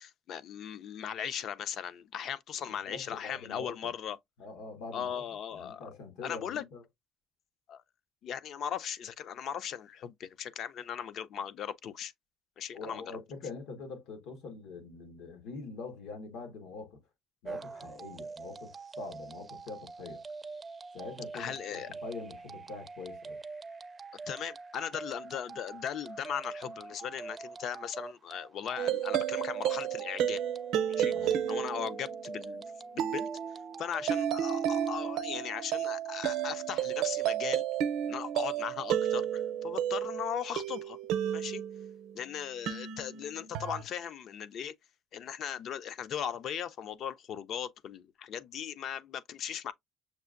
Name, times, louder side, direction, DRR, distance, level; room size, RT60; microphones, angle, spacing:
voice 1, 0.0-4.2 4.9-5.9 6.2-6.6 7.7-7.8 8.2-12.1 12.6-13.2 21.3-21.9 24.3-30.4 30.9-32.7 32.9-33.3 33.8-37.6 38.1-41.0 41.3-41.6 42.1-44.7 45.1-49.7, left 8 dB, 50° left, 0.4 m, -38 dB
voice 2, 2.7-3.7 4.4-5.2 5.5-6.8 12.7-17.0 17.4-20.2 20.9-23.4 31.1-31.4, left 4 dB, 90° left, 1.4 m, -44 dB
sound 1, 17.4-35.0, right 4 dB, 20° right, 0.4 m, -45 dB
sound 2, 28.8-42.1 42.7-43.8, right 10 dB, 75° right, 0.6 m, -32 dB
6.6 x 2.5 x 2.4 m
cardioid pair, 160°, 0 cm